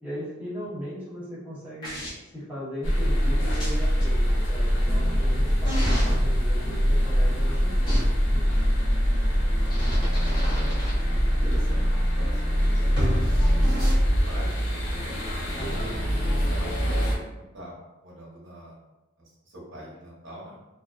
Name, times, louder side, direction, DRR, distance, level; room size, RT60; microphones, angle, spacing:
voice 1, 0.0-2.0 2.3-8.4 15.5-16.0, equal, 10° right, -11 dB, 1.0 m, -38 dB
sound 1, 1.8-2.1 3.5-4.0 5.6-6.1 7.8-8.0 9.6-10.9 12.9-13.9, equal, 20° left, 0.8 m, -28 dB
sound 2, 2.8-17.2, equal, 75° left, 0.5 m, -23 dB
voice 2, 9.2-9.7 10.5-16.0 16.5-18.8 19.2-20.6, equal, 75° right, -4 dB, 0.8 m, -44 dB
2.6 x 2.0 x 2.3 m, 1.0 s
head